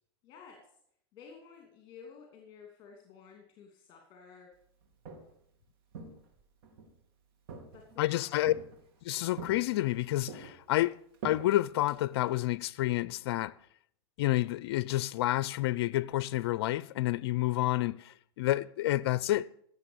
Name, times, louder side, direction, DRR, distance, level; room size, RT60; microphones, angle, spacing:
voice 1, 0.2-0.6 1.1-4.5 7.7-8.3, left 6 dB, 35° left, 2.8 m, -53 dB
Walk footsteps, 4.8-5.5 5.9-6.9 7.5-8.1 8.5-9.0 9.4-10.0 10.3-12.5, right 4 dB, 60° right, 3.0 m, -45 dB
voice 2, 8.0-8.5 9.0-13.5 14.2-19.6, left 16 dB, 65° left, 0.5 m, -29 dB
16.0 x 7.0 x 7.1 m
supercardioid pair, 135°, 14 cm